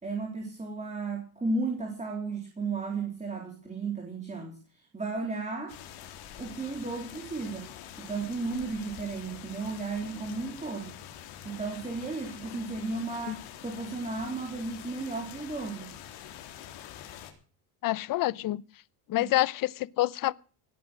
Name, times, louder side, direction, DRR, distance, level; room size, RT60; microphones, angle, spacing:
voice 1, 0.0-4.6 4.9-5.8 6.4-7.7 8.0-11.0 11.4-15.9 19.2-19.3, right 3 dB, 15° right, 3.6 m, -34 dB
sound 1, 5.7-17.3, left 10 dB, 70° left, 3.8 m, -46 dB
voice 2, 17.8-18.6 19.1-20.3, left 16 dB, 40° left, 0.7 m, -27 dB
18.0 x 9.5 x 6.3 m
cardioid pair, 125°, 50 cm